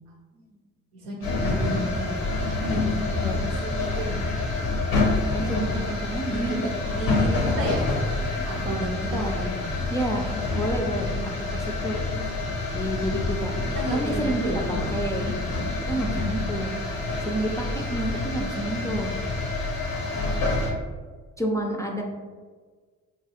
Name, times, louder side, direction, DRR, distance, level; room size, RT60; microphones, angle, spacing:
voice 1, 0.9-4.2 5.5-6.0 6.3-7.9 8.4-9.8 13.7-14.7 15.4-15.9 20.0-20.6, right 1 dB, 85° right, -2 dB, 0.6 m, -33 dB
sound 1, 1.2-20.7, left 2 dB, 90° left, 0.6 m, -27 dB
voice 2, 5.3-6.6 9.1-9.4 9.9-10.3 10.5-12.0 12.7-13.5 13.9-14.4 14.7-15.4 15.7-16.8 17.2-19.1 21.4-22.0, right 1 dB, 10° left, 0 dB, 0.3 m, -29 dB
2.6 x 2.3 x 2.7 m, 1.4 s
hypercardioid pair, 40°, 39 cm